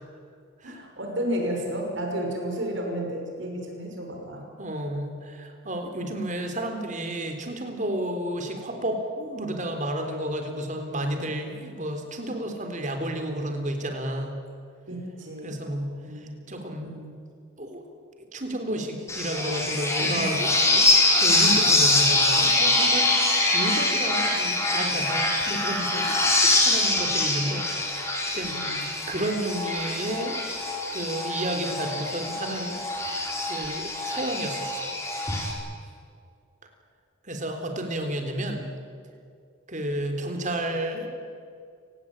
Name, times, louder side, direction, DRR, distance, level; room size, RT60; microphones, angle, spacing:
voice 1, 0.6-4.4 14.9-15.6 16.0-16.4 16.8-17.1 20.0-20.2 28.5-28.9, right 1 dB, 60° right, 1 dB, 5.9 m, -32 dB
voice 2, 4.6-14.4 15.4-16.9 17.6-17.8 18.3-20.8 21.1-28.5 28.8-30.4 30.9-32.8 33.5-34.9 37.3-38.7 39.7-41.1, right 1 dB, 35° right, 5 dB, 3.7 m, -31 dB
sound 1, 19.1-35.5, left 2 dB, 15° left, 4.5 m, -24 dB
29.0 x 18.5 x 9.0 m, 2.3 s
head